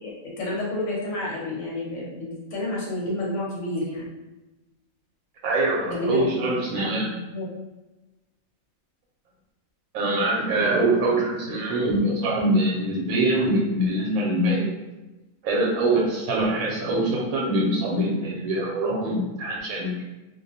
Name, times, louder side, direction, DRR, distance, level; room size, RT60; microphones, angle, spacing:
voice 1, 0.0-4.1 5.9-7.5, left 1 dB, 65° left, -5 dB, 0.9 m, -30 dB
voice 2, 5.4-7.1 9.9-14.7 15.4-19.9, right 1 dB, 80° right, -3 dB, 1.0 m, -23 dB
2.5 x 2.0 x 2.6 m, 1.1 s
omnidirectional pair, 1.4 m